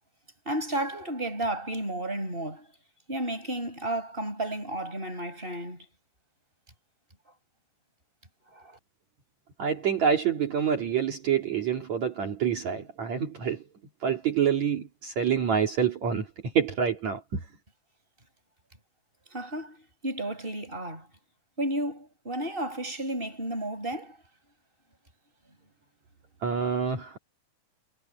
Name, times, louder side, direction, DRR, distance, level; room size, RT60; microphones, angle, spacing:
voice 1, 0.5-2.7 3.1-5.9 8.5-8.8 19.3-21.1 21.6-24.2, right 1 dB, 15° right, 7.4 m, -32 dB
voice 2, 9.6-13.6 14.0-17.4 26.4-27.2, right 7 dB, 55° right, 4.0 m, -27 dB
omnidirectional pair, 3.9 m